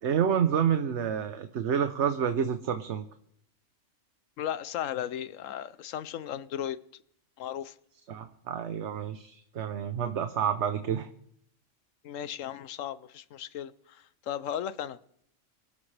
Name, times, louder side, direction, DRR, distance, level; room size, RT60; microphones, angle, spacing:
voice 1, 0.0-3.0 8.1-11.1, right 8 dB, 65° right, 1.1 m, -28 dB
voice 2, 4.4-6.8 7.4-7.7 12.0-15.0, left 10 dB, 85° left, 1.1 m, -36 dB
25.0 x 12.5 x 3.3 m
omnidirectional pair, 1.3 m